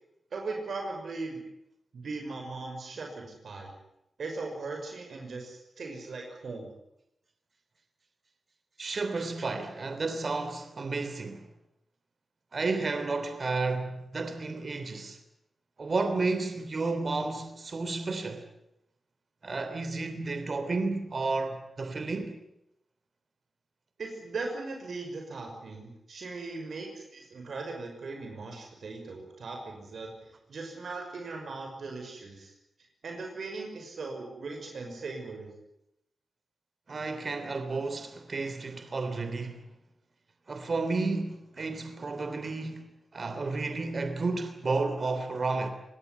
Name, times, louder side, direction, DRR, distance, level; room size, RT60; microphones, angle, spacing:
voice 1, 0.3-1.4 1.9-3.7 4.2-6.7 24.0-32.5 33.0-35.5, right 3 dB, 75° right, 5.8 m, -39 dB
voice 2, 8.8-11.4 12.5-15.2 15.8-18.4 19.4-22.4 36.9-39.6 40.5-42.9 43.1-45.7, right 3 dB, 50° right, 3.2 m, -32 dB
24.5 x 18.5 x 9.7 m
wide cardioid pair, 95°, 0 cm